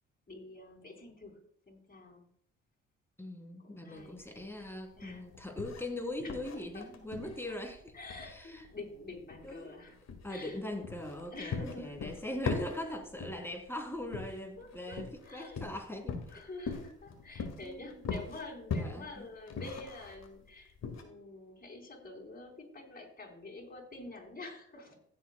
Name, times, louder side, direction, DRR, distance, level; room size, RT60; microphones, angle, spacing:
voice 1, 0.3-2.2 3.6-4.2 5.0-5.2 6.2-6.9 7.9-10.0 10.3-10.6 11.0-12.1 12.5-12.6 14.6-15.6 16.3-25.0, left 2 dB, 25° left, -1 dB, 4.3 m, -48 dB
voice 2, 3.2-7.9 8.2-8.6 9.4-9.7 10.2-16.4 17.6-18.0 18.8-19.3, left 1 dB, 5° left, 3 dB, 3.0 m, -41 dB
sound 1, 4.0-21.0, left 5 dB, 55° left, 1.9 m, -41 dB
16.5 x 7.7 x 2.2 m, 0.64 s
supercardioid pair, 65°, 33 cm